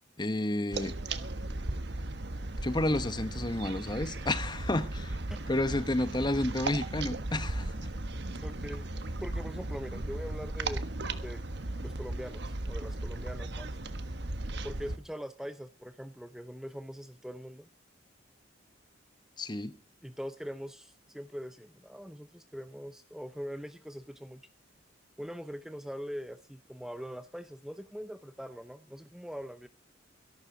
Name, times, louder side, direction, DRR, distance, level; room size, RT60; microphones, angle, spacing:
voice 1, 0.2-0.9 2.6-5.2 5.5-7.7 19.4-19.7, left 1 dB, 20° left, 1.0 m, -31 dB
sound 1, 0.7-15.0, right 2 dB, 60° right, 1.4 m, -36 dB
voice 2, 8.4-8.9 9.2-10.9 11.2-11.4 11.8-13.8 14.6-17.7 20.0-24.4 25.2-29.7, equal, 5° right, 0.7 m, -42 dB
22.5 x 12.0 x 4.0 m
head